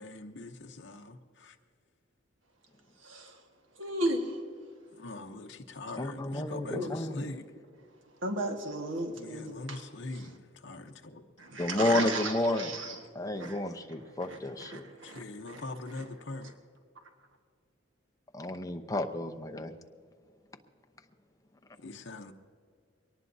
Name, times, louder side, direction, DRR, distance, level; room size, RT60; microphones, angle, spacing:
voice 1, 0.0-1.6 5.0-7.5 9.1-11.2 15.0-16.5 21.8-22.3, left 2 dB, 60° left, 0.8 m, -42 dB
voice 2, 3.0-3.3 3.8-4.4 6.7-6.9 8.2-9.8 11.4-13.0 13.4-13.6 14.2-15.6, right 1 dB, 80° right, 1.6 m, -35 dB
voice 3, 6.0-7.2 11.6-14.8 18.3-19.7, left 1 dB, 15° left, 0.7 m, -31 dB
23.0 x 19.0 x 2.7 m
head